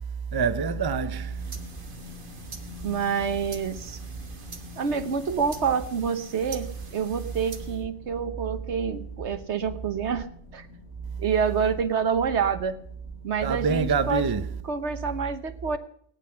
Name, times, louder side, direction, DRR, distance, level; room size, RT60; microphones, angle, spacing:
voice 1, 0.3-1.4 13.4-14.5, right 5 dB, 25° right, 0.6 m, -25 dB
sound 1, 1.1-15.0, left 3 dB, 75° left, 2.3 m, -47 dB
sound 2, 1.2-7.9, right 4 dB, 45° right, 1.5 m, -46 dB
voice 2, 2.8-4.0 4.8-10.3 10.5-10.7 11.2-12.7 13.2-14.2 14.6-15.8, right 6 dB, 70° right, 1.4 m, -27 dB
18.0 x 9.5 x 5.8 m
omnidirectional pair, 1.2 m